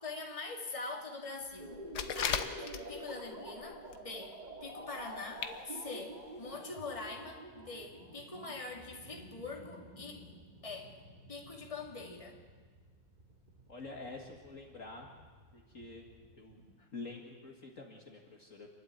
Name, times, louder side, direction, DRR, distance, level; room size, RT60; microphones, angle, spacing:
voice 1, 0.0-1.7 2.2-10.3 10.6-11.0 11.3-12.4 16.8-16.9, left 3 dB, 15° left, 1 dB, 2.3 m, -44 dB
sound 1, 1.6-16.8, right 1 dB, 25° right, 2.3 m, -49 dB
sound 2, 1.7-3.2 3.6-4.1 4.3-4.4 5.1-5.2 5.4-5.6 5.9-6.0 6.5-6.6, left 7 dB, 65° left, 1.5 m, -36 dB
voice 2, 13.7-15.1 15.5-16.0 16.4-16.6 16.9-18.7, left 3 dB, 45° left, 1 dB, 2.1 m, -47 dB
28.0 x 12.0 x 9.3 m, 1.5 s
omnidirectional pair, 2.0 m